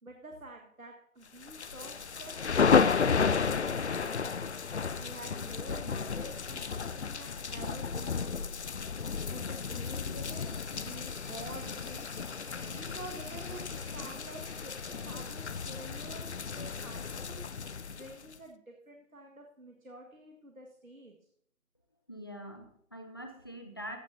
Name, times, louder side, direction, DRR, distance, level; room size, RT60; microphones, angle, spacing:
voice 1, 0.0-4.4 4.9-8.5 9.3-12.3 12.6-17.5 18.0-21.2, right 1 dB, 85° right, 2 dB, 1.8 m, -48 dB
sound 1, 1.4-18.4, left 5 dB, 55° left, 0.5 m, -32 dB
sound 2, 9.8-16.0, right 2 dB, 45° right, 3.9 m, -57 dB
voice 2, 22.1-24.0, equal, 20° left, 5 dB, 0.7 m, -44 dB
15.0 x 11.5 x 2.8 m, 0.66 s
figure-of-eight pair, 155°, 41 cm